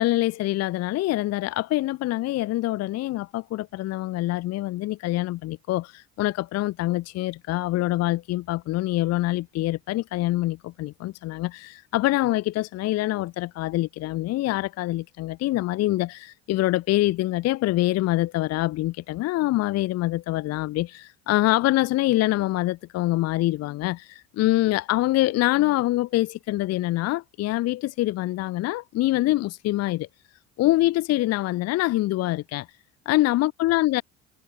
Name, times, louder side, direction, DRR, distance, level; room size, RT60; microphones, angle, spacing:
voice 1, 0.0-30.1 30.6-32.7 33.1-34.0, left 17 dB, 50° left, 0.5 m, -25 dB
supercardioid pair, 75°, 33 cm